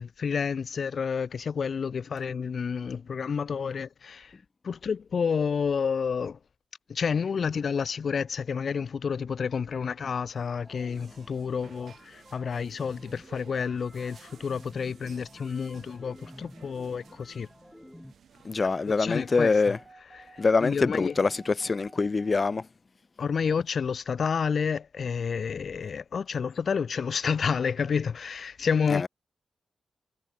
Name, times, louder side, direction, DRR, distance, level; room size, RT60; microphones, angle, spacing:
voice 1, 0.0-4.4 4.6-6.4 6.9-17.5 18.9-19.7 20.1-21.1 23.2-29.1, left 6 dB, 65° left, 0.8 m, -30 dB
sound 1, 10.3-18.1, left 1 dB, 5° left, 3.1 m, -51 dB
sound 2, 10.7-19.4, right 7 dB, 80° right, 3.0 m, -56 dB
voice 2, 18.4-19.8 20.4-22.7 28.9-29.1, left 4 dB, 40° left, 0.5 m, -24 dB
sound 3, 19.0-22.6, right 4 dB, 40° right, 1.9 m, -53 dB
cardioid pair, 80°, 0 cm